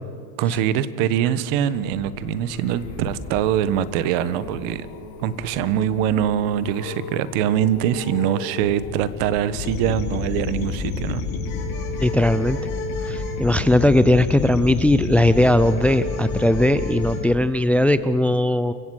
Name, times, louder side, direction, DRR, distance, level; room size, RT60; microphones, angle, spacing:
voice 1, 0.4-4.9 5.2-11.2, right 10 dB, 70° right, 15 dB, 1.4 m, -23 dB
sound 1, 1.4-14.7 15.2-15.6 15.8-15.9, left 4 dB, 85° left, 7.3 m, -39 dB
sound 2, 9.5-17.2, left 4 dB, 60° left, 7.3 m, -28 dB
voice 2, 12.0-12.7 13.0-18.7, left 1 dB, 5° left, 14 dB, 0.4 m, -18 dB
28.5 x 16.5 x 6.5 m, 2.3 s
supercardioid pair, 130°, 41 cm